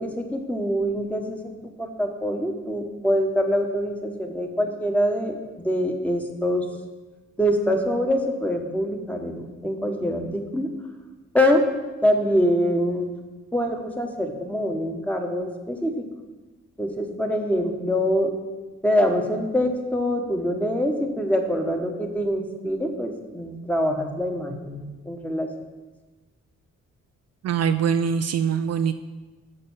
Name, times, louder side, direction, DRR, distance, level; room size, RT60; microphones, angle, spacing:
voice 1, 0.0-6.7 7.4-10.7 11.3-11.7 12.0-13.1 13.5-16.0 16.8-18.3 18.8-25.5, equal, 5° left, 3 dB, 1.3 m, -24 dB
voice 2, 27.4-28.9, right 7 dB, 55° right, 9 dB, 0.4 m, -23 dB
6.8 x 5.3 x 7.1 m, 1.2 s
cardioid pair, 75°, 31 cm